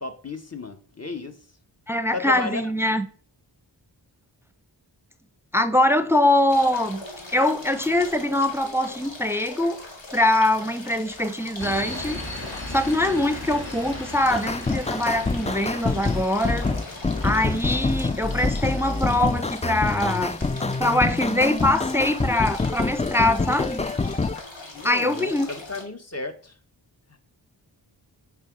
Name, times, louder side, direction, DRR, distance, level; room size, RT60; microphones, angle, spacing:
voice 1, 0.0-1.4 2.1-2.6 24.7-26.5, left 3 dB, 35° left, 1.6 m, -33 dB
voice 2, 1.9-3.1 5.5-7.0 7.3-9.8 10.1-16.7 17.2-20.4 20.6-23.8 24.8-25.5, left 1 dB, 5° right, 0.8 m, -23 dB
sound 1, 6.5-25.8, left 2 dB, 85° left, 2.4 m, -41 dB
sound 2, 11.6-24.2, left 1 dB, 60° left, 3.5 m, -40 dB
sound 3, 14.3-24.4, left 3 dB, 15° left, 0.4 m, -26 dB
9.6 x 5.0 x 5.5 m
cardioid pair, 40°, 44 cm